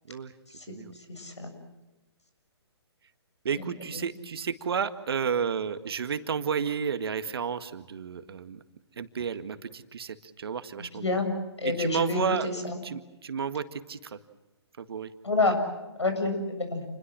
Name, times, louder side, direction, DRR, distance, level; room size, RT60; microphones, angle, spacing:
voice 1, 1.1-1.5 3.6-3.7 10.9-11.3 11.6-12.8 15.2-15.6 16.0-16.9, left 3 dB, 80° left, 7 dB, 7.1 m, -28 dB
voice 2, 3.5-8.6 9.0-11.2 11.6-12.5 12.8-14.1 14.8-15.1, right 6 dB, 60° right, 11 dB, 1.8 m, -31 dB
29.0 x 21.5 x 7.6 m, 1.1 s
figure-of-eight pair, 135°, 14 cm